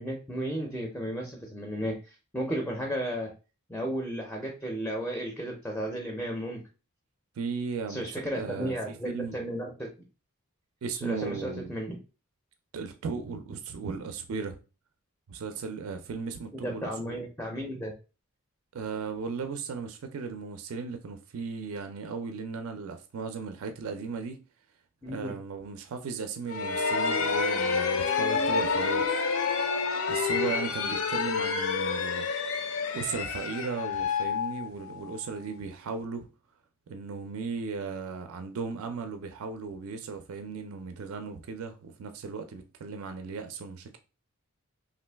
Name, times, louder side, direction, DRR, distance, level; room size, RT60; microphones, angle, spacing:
voice 1, 0.0-3.3 3.7-6.6 7.9-9.9 11.0-11.9 16.5-17.9 25.0-25.3, equal, 5° left, 0.4 m, -34 dB
voice 2, 7.4-8.1 8.3-9.4 10.8-11.7 12.7-14.6 15.3-17.2 18.7-24.4 25.0-29.2 30.1-32.3 32.9-36.3 36.9-44.0, right 5 dB, 70° right, 0.4 m, -36 dB
sound 1, 26.5-35.2, left 5 dB, 65° left, 0.5 m, -28 dB
3.0 x 2.5 x 3.3 m
head